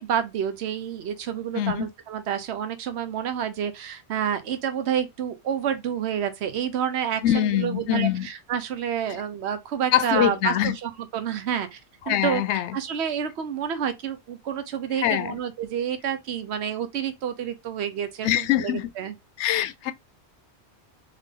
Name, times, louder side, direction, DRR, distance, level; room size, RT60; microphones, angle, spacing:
voice 1, 0.0-11.8 12.1-19.1, right 8 dB, 75° right, 1.0 m, -29 dB
voice 2, 1.5-1.9 7.2-8.3 9.9-10.8 12.1-12.8 15.0-15.4 18.2-18.9 19.4-19.9, left 12 dB, 90° left, 0.9 m, -23 dB
3.7 x 3.6 x 3.7 m
omnidirectional pair, 1.1 m